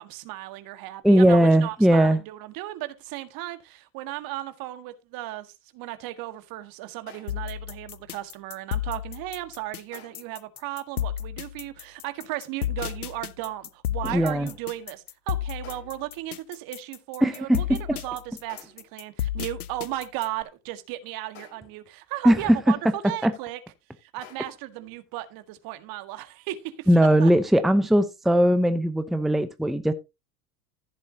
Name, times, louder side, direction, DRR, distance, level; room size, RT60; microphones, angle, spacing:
voice 1, 0.0-22.8 23.0-23.6 24.0-26.9 27.2-27.3, right 15 dB, 50° right, 1.8 m, -36 dB
voice 2, 1.0-2.2 14.0-14.5 17.2-18.0 22.2-22.6 23.2-23.3 26.9-29.9, right 1 dB, ahead, 0.9 m, -19 dB
sound 1, 7.1-7.6 9.9-10.4 12.8-13.3 15.6-16.1 18.5-19.0 21.4-21.9 24.2-24.4, left 7 dB, 55° left, 5.8 m, -50 dB
sound 2, 7.3-20.4, left 11 dB, 90° left, 0.7 m, -32 dB
15.0 x 7.5 x 2.9 m
hypercardioid pair, 80°, 43 cm